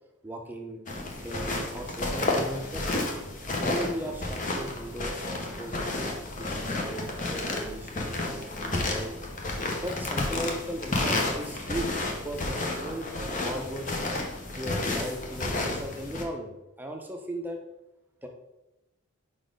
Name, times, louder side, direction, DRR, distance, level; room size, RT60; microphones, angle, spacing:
voice 1, 0.2-0.8 1.2-3.0 3.6-5.2 5.6-9.3 9.8-11.9 12.2-13.9 14.6-17.6 18.2-18.3, equal, 10° right, 2 dB, 0.7 m, -37 dB
sound 1, 0.9-16.2, left 2 dB, 35° left, 0.9 m, -31 dB
5.1 x 4.2 x 5.1 m, 0.95 s
head